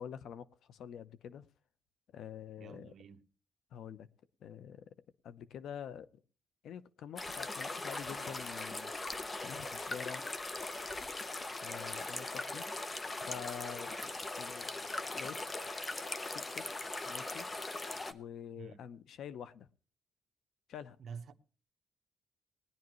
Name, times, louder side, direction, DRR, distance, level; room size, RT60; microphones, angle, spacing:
voice 1, 0.0-1.5 2.1-2.9 3.7-4.1 4.4-5.0 5.2-6.2 6.6-8.9 9.4-10.2 11.6-12.6 13.3-14.1 14.4-15.4 16.3-16.7 17.0-17.5 18.1-19.7 20.7-21.0, left 8 dB, 80° left, 0.7 m, -47 dB
voice 2, 2.6-3.2 18.6-18.8 21.0-21.3, right 6 dB, 60° right, 1.0 m, -48 dB
sound 1, 7.2-18.1, left 2 dB, 25° left, 0.9 m, -40 dB
19.5 x 10.5 x 3.1 m
cardioid pair, 110°, 0 cm